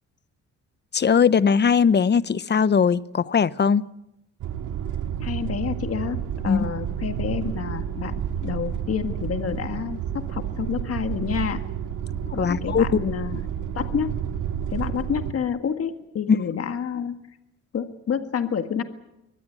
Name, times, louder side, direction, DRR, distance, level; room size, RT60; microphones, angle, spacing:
voice 1, 0.9-3.8 6.5-6.7 12.3-13.1 16.3-16.4, left 6 dB, 35° left, 0.8 m, -20 dB
sound 1, 4.4-15.3, right 9 dB, 80° right, 1.9 m, -30 dB
voice 2, 5.2-8.2 8.4-11.7 12.3-13.4 13.7-14.1 14.7-17.2 17.7-18.8, left 7 dB, 50° left, 1.8 m, -29 dB
23.5 x 19.0 x 8.6 m
cardioid pair, 90°, 30 cm